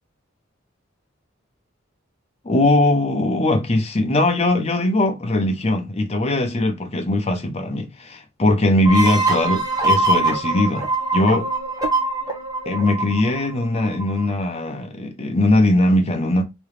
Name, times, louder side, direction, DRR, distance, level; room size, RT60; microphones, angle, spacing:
voice 1, 2.4-11.5 12.6-16.4, left 1 dB, 35° left, 0.8 m, -20 dB
sound 1, 8.8-14.3, right 2 dB, 20° right, 1.0 m, -23 dB
3.7 x 3.1 x 3.2 m
head